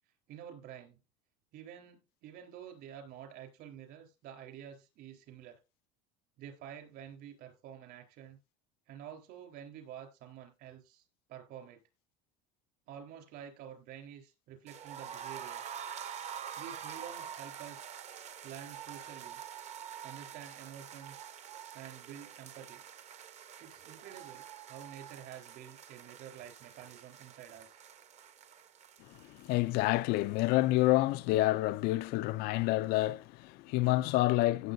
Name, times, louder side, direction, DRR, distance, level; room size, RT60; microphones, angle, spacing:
voice 1, 0.3-1.0 1.5-5.6 6.4-8.4 8.9-11.8 12.9-15.6 16.6-17.9 18.4-19.4 20.0-21.3 21.7-22.8 23.6-27.8, right 9 dB, 60° right, 4.0 m, -49 dB
sound 1, 14.7-30.5 30.8-30.9 31.2-31.3, right 8 dB, 35° right, 1.0 m, -46 dB
voice 2, 29.1-34.7, left 18 dB, 55° left, 0.4 m, -28 dB
16.5 x 7.5 x 2.6 m
supercardioid pair, 130°, 19 cm